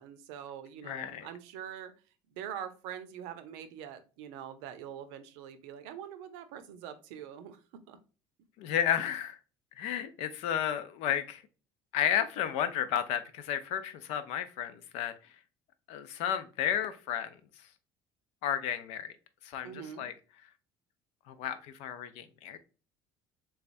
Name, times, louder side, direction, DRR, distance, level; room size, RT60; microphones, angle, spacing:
voice 1, 0.0-1.9 2.3-7.6 7.9-8.0 19.6-20.1, right 9 dB, 85° right, 0.6 m, -44 dB
voice 2, 0.8-1.3 8.6-9.4 9.8-11.4 11.9-15.4 15.9-17.4 18.4-19.1 19.4-20.1 21.3-22.6, left 9 dB, 75° left, 0.6 m, -32 dB
3.5 x 3.2 x 2.5 m
cardioid pair, 115°, 11 cm